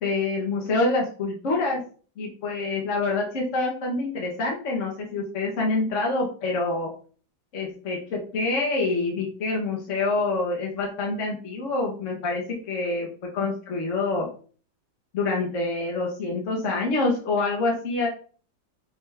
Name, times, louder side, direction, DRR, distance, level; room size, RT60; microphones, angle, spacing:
voice 1, 0.0-1.8 2.2-6.9 7.5-13.1 13.3-14.3 15.1-18.1, left 3 dB, 50° left, -1 dB, 1.1 m, -26 dB
5.4 x 2.4 x 3.3 m, 0.42 s
omnidirectional pair, 2.0 m